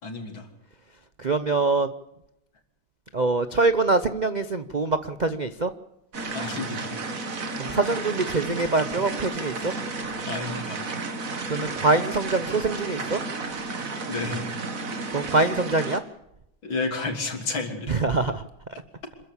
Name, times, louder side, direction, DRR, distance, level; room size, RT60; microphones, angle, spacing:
voice 1, 0.0-0.5 6.3-7.0 10.3-10.8 14.1-14.5 16.6-18.0, left 3 dB, 75° left, 5 dB, 3.9 m, -31 dB
voice 2, 1.2-1.9 3.1-5.7 7.6-9.7 11.5-13.2 15.1-16.0 17.9-18.4, right 3 dB, 70° right, 11 dB, 0.4 m, -24 dB
sound 1, 6.1-16.0, right 3 dB, 45° right, 2.1 m, -32 dB
26.0 x 14.5 x 8.4 m, 0.83 s
omnidirectional pair, 2.2 m